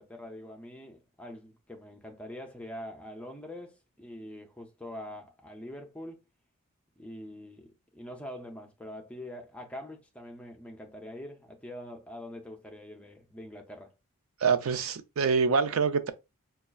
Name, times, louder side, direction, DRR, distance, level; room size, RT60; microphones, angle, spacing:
voice 1, 0.0-6.2 7.0-13.9, left 1 dB, 5° left, 0.5 m, -44 dB
voice 2, 14.4-16.1, right 5 dB, 65° right, 0.4 m, -25 dB
5.1 x 2.3 x 2.3 m
head